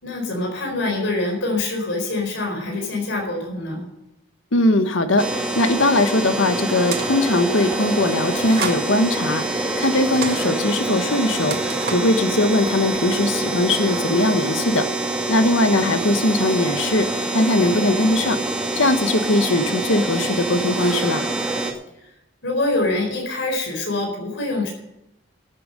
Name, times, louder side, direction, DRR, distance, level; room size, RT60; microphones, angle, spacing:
voice 1, 0.0-3.8 22.4-24.7, left 2 dB, 70° left, 1 dB, 4.4 m, -25 dB
voice 2, 4.5-14.9 15.3-18.4 18.8-21.3, left 1 dB, 90° left, 8 dB, 1.3 m, -20 dB
sound 1, 5.2-21.7, right 2 dB, 5° right, 2.1 m, -25 dB
sound 2, 6.8-7.3 8.3-8.8 9.8-10.4 11.4-12.2, right 5 dB, 55° right, 2.0 m, -30 dB
13.0 x 8.8 x 6.6 m, 0.87 s
head